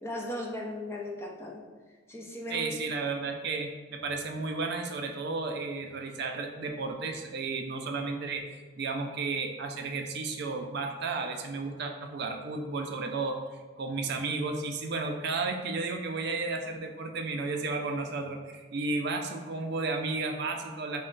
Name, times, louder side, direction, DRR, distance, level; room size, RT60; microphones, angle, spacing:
voice 1, 0.0-1.6 2.1-2.7, left 1 dB, 15° left, 0 dB, 0.4 m, -37 dB
voice 2, 2.5-8.5 8.8-13.4 13.8-21.0, right 3 dB, 60° right, 4 dB, 0.4 m, -33 dB
4.2 x 2.1 x 3.8 m, 1.3 s
head